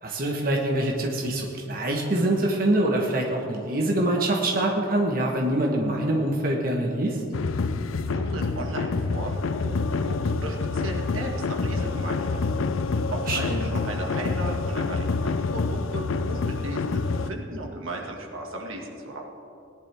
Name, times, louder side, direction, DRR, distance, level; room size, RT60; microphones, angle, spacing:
voice 1, 0.0-7.2 13.3-13.7, right 1 dB, 45° right, 0 dB, 1.2 m, -25 dB
sound 1, 7.3-17.3, left 4 dB, 80° left, 0.5 m, -27 dB
voice 2, 8.0-12.7 13.1-19.2, right 1 dB, 90° right, 1 dB, 1.9 m, -36 dB
17.5 x 11.0 x 3.5 m, 2.8 s
head